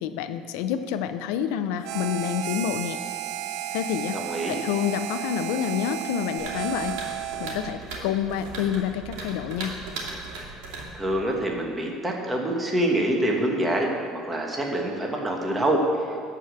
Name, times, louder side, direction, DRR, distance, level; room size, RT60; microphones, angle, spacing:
voice 1, 0.0-3.0 3.7-4.2 4.5-7.0 7.4-9.7, left 9 dB, 80° left, 10 dB, 0.6 m, -28 dB
Harmonica, 1.8-7.8, right 11 dB, 60° right, 0.4 m, -33 dB
voice 2, 4.1-4.6 10.9-13.9 14.2-15.8, right 1 dB, 10° right, 0 dB, 1.1 m, -25 dB
sound 1, 6.4-11.6, right 3 dB, 85° right, 2.7 m, -38 dB
12.5 x 4.9 x 8.0 m, 2.5 s
cardioid pair, 165°, 0 cm